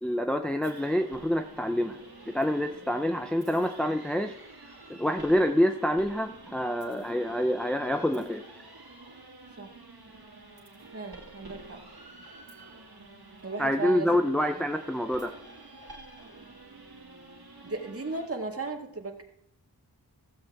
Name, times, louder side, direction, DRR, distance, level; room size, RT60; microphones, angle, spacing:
voice 1, 0.0-2.0 2.3-4.4 4.9-8.4 13.6-15.3, equal, 5° left, 5 dB, 0.5 m, -27 dB
sound 1, 0.6-18.3, right 2 dB, 65° right, 2.2 m, -49 dB
voice 2, 10.9-11.8 13.4-14.1 14.4-14.6 17.6-19.2, right 3 dB, 35° right, 2 dB, 1.9 m, -36 dB
15.0 x 7.8 x 3.6 m, 0.72 s
wide cardioid pair, 80°, 40 cm